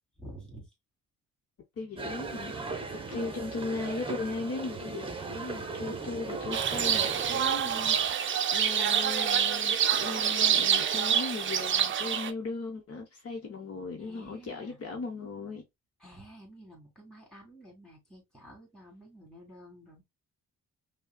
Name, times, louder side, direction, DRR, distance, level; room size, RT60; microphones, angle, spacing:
voice 1, 0.2-0.7 2.9-3.2 14.0-14.8 16.0-20.0, right 1 dB, ahead, 2.6 m, -50 dB
voice 2, 1.8-15.6, left 3 dB, 50° left, 1.0 m, -38 dB
sound 1, 2.0-8.1, right 4 dB, 20° right, 0.8 m, -38 dB
sound 2, 6.5-12.3, right 8 dB, 40° right, 0.5 m, -27 dB
5.3 x 2.2 x 2.2 m
cardioid pair, 90°, 30 cm